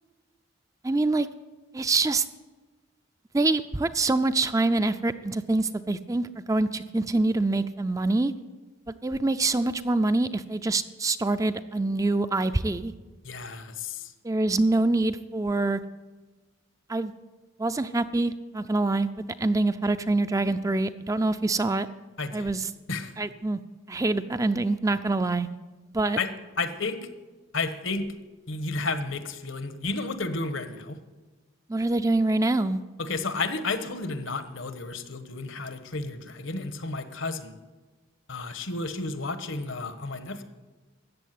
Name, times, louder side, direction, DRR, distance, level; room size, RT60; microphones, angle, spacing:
voice 1, 0.8-1.3 1.7-2.3 3.3-8.3 9.0-12.9 14.2-15.8 16.9-17.1 17.6-19.1 19.4-21.9 22.3-22.7 23.2-23.6 23.9-25.5 25.9-26.2 31.7-32.8, right 2 dB, 15° right, 11 dB, 0.4 m, -25 dB
voice 2, 13.2-14.1 22.2-22.5 22.9-23.1 26.2-26.3 26.6-27.1 27.5-28.1 28.5-31.0 33.0-37.5 38.3-40.4, left 3 dB, 75° left, 10 dB, 1.2 m, -32 dB
14.0 x 8.5 x 9.3 m, 1.2 s
head